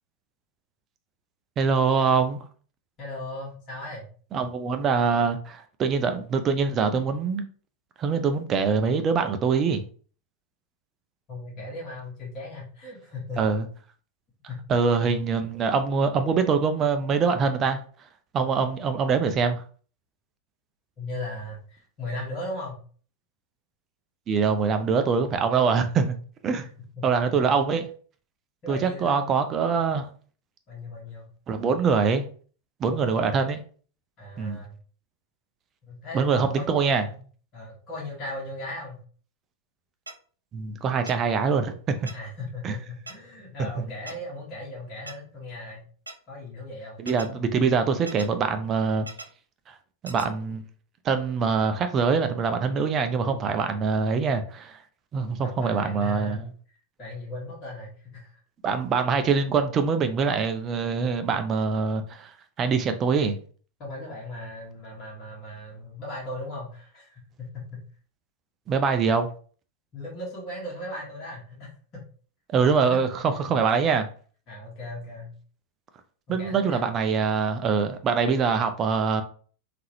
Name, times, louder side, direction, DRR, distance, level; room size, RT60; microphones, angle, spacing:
voice 1, 1.6-2.4 4.3-7.4 8.0-9.8 13.4-13.7 14.7-17.8 18.3-19.6 24.3-26.2 26.4-26.6 27.0-27.9 28.7-30.1 31.5-32.2 32.8-33.6 34.4-34.6 36.1-37.0 40.5-42.1 42.6-42.7 43.8-43.9 47.0-49.1 50.0-50.6 51.0-54.8 55.1-56.4 58.6-62.3 62.6-63.4 68.7-69.3 72.5-74.1 76.3-79.2, right 5 dB, 30° right, 0.5 m, -24 dB
voice 2, 3.0-4.1 11.3-13.4 14.5-14.8 21.0-22.8 26.9-27.1 27.3-27.4 28.6-29.3 30.7-31.3 32.9-33.4 34.2-34.8 35.8-37.2 37.5-39.0 42.1-45.8 46.3-47.0 55.4-56.4 57.0-58.4 60.9-61.2 63.8-67.8 69.9-72.0 72.8-73.1 74.5-75.3 76.3-76.9, left 1 dB, 35° left, 1.6 m, -37 dB
sound 1, 40.1-40.2 41.1-41.2 42.1-42.2 43.1-43.2 44.1-44.2 45.1-45.2 46.1-46.2 47.1-47.3 48.1-48.3 49.1-49.3 50.1-50.3, right 3 dB, 80° right, 0.4 m, -39 dB
3.7 x 2.8 x 3.0 m
figure-of-eight pair, 90°, 0 cm